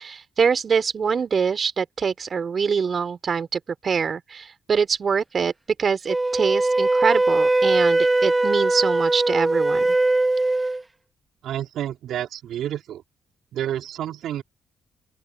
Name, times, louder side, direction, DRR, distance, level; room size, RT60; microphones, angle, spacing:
voice 1, 0.0-5.5 5.8-9.9, right 6 dB, 50° right, 3.5 m, -24 dB
Wind instrument woodwind instrument, 6.1-10.8, right 2 dB, 20° right, 3.3 m, -20 dB
voice 2, 11.4-13.0 13.5-14.4, right 11 dB, 75° right, 4.8 m, -29 dB
open air
supercardioid pair, 60°, 0 cm